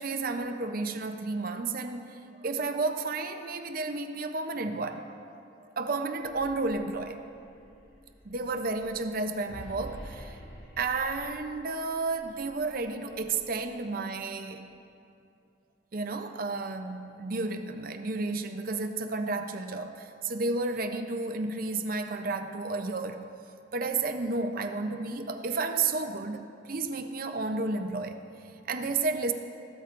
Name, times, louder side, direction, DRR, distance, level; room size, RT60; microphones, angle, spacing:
voice 1, 0.0-5.1 5.8-7.2 8.2-10.4 10.8-14.7 15.9-23.2 23.7-29.3, right 3 dB, 45° right, 7 dB, 0.6 m, -32 dB
sound 1, 6.1-14.2, equal, 85° left, 2.7 m, -50 dB
14.5 x 12.5 x 2.5 m, 2.6 s
head